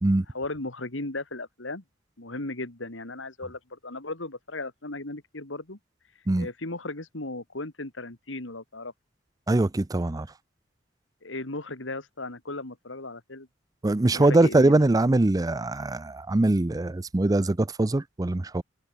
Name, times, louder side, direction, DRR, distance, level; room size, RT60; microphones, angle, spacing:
voice 1, 0.3-1.8 2.2-5.8 6.4-8.9 11.2-13.5 14.1-14.8, left 2 dB, 85° left, 3.0 m, -36 dB
voice 2, 9.5-10.3 13.8-18.6, right 2 dB, 20° right, 0.5 m, -22 dB
head